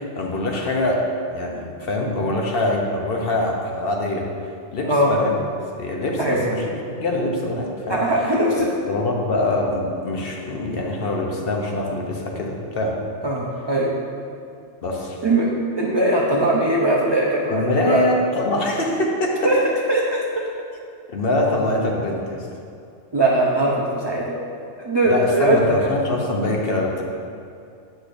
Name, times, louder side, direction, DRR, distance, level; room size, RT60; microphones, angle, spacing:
voice 1, 0.0-4.3 4.7-5.3 5.7-6.6 7.0-8.0 8.9-13.0 14.8-15.2 17.5-19.5 21.1-22.5 25.0-27.0, left 1 dB, 55° left, 0 dB, 0.9 m, -24 dB
voice 2, 4.8-5.2 6.2-6.5 7.9-8.7 13.2-13.9 15.2-18.0 19.4-19.6 19.9-20.2 23.1-24.4 24.8-25.9, right 1 dB, 35° right, -4 dB, 0.4 m, -20 dB
8.4 x 6.4 x 2.5 m, 2.5 s
omnidirectional pair, 1.3 m